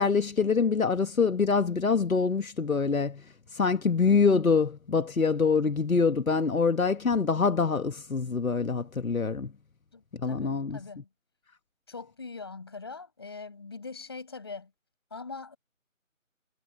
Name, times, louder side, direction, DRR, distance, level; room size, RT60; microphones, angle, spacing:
voice 1, 0.0-9.5 10.1-10.8, left 5 dB, 85° left, 1.4 m, -25 dB
voice 2, 9.9-11.1 11.9-14.7 15.1-15.6, left 4 dB, 20° left, 5.6 m, -42 dB
figure-of-eight pair, 180°, 41 cm